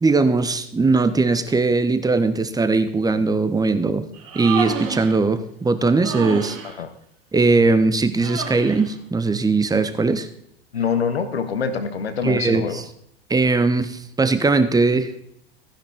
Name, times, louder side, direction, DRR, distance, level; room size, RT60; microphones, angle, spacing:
voice 1, 0.0-4.0 4.3-6.6 7.3-10.3 12.2-12.8 13.3-15.1, right 3 dB, 10° right, 11 dB, 1.1 m, -19 dB
Human voice, 4.1-5.2 6.0-6.7 8.2-8.9, right 6 dB, 55° right, 2.6 m, -30 dB
voice 2, 10.7-12.8, left 6 dB, 85° left, 10 dB, 1.3 m, -25 dB
15.0 x 10.5 x 3.6 m, 0.71 s
hypercardioid pair, 80°, 30 cm